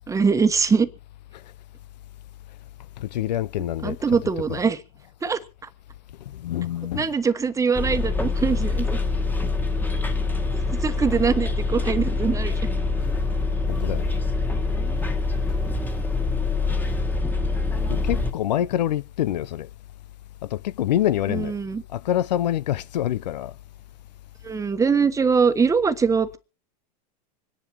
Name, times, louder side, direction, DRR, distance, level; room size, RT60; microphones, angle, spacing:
voice 1, 0.1-0.9 3.8-4.8 5.2-5.4 6.9-9.0 10.5-12.5 21.3-21.8 24.4-26.4, right 5 dB, 15° right, 1.2 m, -22 dB
voice 2, 3.0-4.6 6.3-7.1 13.7-14.1 17.9-19.7 20.4-21.6 21.9-23.5, left 12 dB, 85° left, 0.7 m, -26 dB
Bus, 7.7-18.3, left 3 dB, 10° left, 1.6 m, -25 dB
25.5 x 10.5 x 3.0 m
hypercardioid pair, 115°, 21 cm